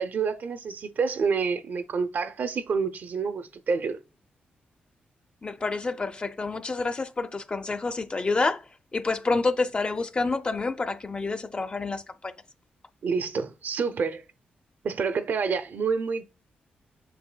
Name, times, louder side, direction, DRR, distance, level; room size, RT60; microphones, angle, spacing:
voice 1, 0.0-4.0 13.0-14.2 14.8-16.2, right 5 dB, 60° right, 0.6 m, -28 dB
voice 2, 5.4-8.6 8.9-12.3, left 3 dB, 30° left, 0.5 m, -28 dB
7.5 x 6.2 x 2.2 m
cardioid pair, 85°, 3 cm